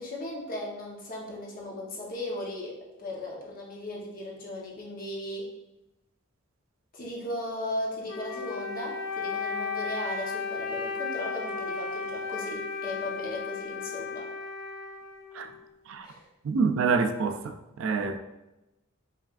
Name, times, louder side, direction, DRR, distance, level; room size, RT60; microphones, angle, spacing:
voice 1, 0.0-5.5 6.9-14.3 16.0-16.3, left 1 dB, 45° left, -3 dB, 0.9 m, -37 dB
Wind instrument woodwind instrument, 8.0-15.6, left 4 dB, 80° left, 0.7 m, -34 dB
voice 2, 16.4-17.5 17.8-18.2, right 5 dB, 70° right, 7 dB, 0.4 m, -26 dB
4.8 x 3.2 x 2.5 m, 0.95 s
head